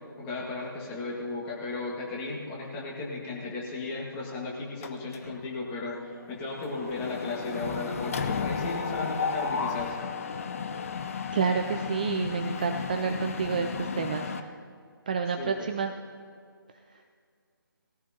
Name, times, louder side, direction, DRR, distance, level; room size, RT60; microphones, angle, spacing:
voice 1, 0.2-10.0 15.4-15.7, left 3 dB, 15° left, -3 dB, 1.8 m, -35 dB
Mechanisms, 4.8-5.4 5.8-6.0 6.2-14.4, left 5 dB, 35° left, 0.6 m, -33 dB
voice 2, 11.3-14.5 15.1-15.9 16.9-17.0, right 6 dB, 20° right, 5 dB, 0.3 m, -29 dB
18.5 x 14.0 x 2.8 m, 2.2 s
figure-of-eight pair, 150°, 12 cm